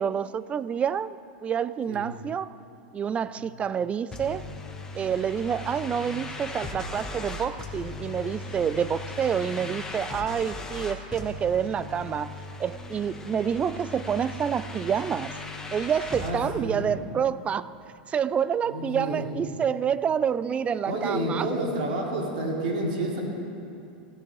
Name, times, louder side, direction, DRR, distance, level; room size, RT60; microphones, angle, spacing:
voice 1, 0.0-2.5 2.9-4.5 4.9-15.4 15.7-17.7 18.1-21.5, right 7 dB, 25° right, 0.4 m, -28 dB
sound 1, 4.1-16.3, left 2 dB, 10° left, 1.7 m, -38 dB
voice 2, 16.2-16.9 18.6-19.3 20.9-23.2, right 1 dB, 65° right, 3.7 m, -29 dB
19.0 x 14.0 x 4.8 m
hypercardioid pair, 110°, 5 cm